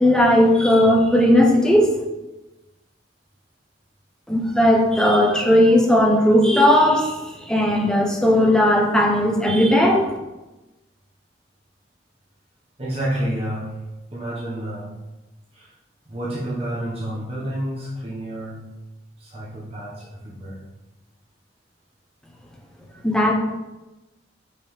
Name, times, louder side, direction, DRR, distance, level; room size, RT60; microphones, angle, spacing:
voice 1, 0.0-2.0 4.3-10.2 23.0-23.3, left 1 dB, 5° left, 0 dB, 0.7 m, -17 dB
voice 2, 12.8-13.8 14.1-14.9 15.6-15.7 16.1-18.7 19.2-20.6, right 1 dB, 35° right, -7 dB, 1.2 m, -29 dB
5.4 x 5.2 x 3.3 m, 1.0 s
head